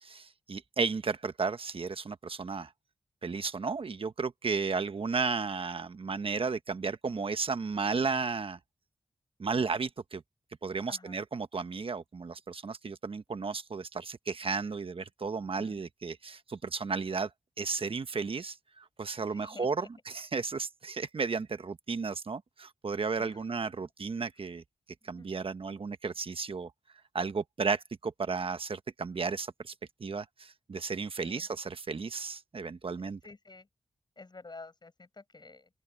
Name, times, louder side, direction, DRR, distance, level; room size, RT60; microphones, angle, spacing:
voice 1, 0.0-2.7 3.2-8.6 9.4-10.2 10.6-17.3 17.6-24.6 25.0-26.7 27.1-29.7 30.0-33.2, right 4 dB, 55° right, 1.2 m, -34 dB
voice 2, 10.9-11.2 15.5-15.8 19.2-19.9 23.1-23.5 25.0-25.3 31.2-31.5 33.0-33.7 34.2-35.7, left 3 dB, 40° left, 6.9 m, -50 dB
open air
cardioid pair, 50°, 11 cm